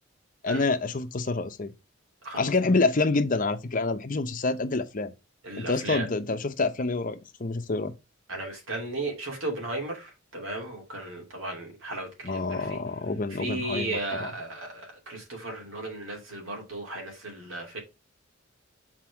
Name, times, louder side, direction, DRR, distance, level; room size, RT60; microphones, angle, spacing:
voice 1, 0.4-1.7 2.4-5.1 5.6-7.9 12.2-14.3, left 3 dB, 40° left, 0.8 m, -27 dB
voice 2, 5.4-6.1 8.3-12.8 13.4-17.8, right 2 dB, 75° right, 2.8 m, -35 dB
6.1 x 4.3 x 4.8 m
head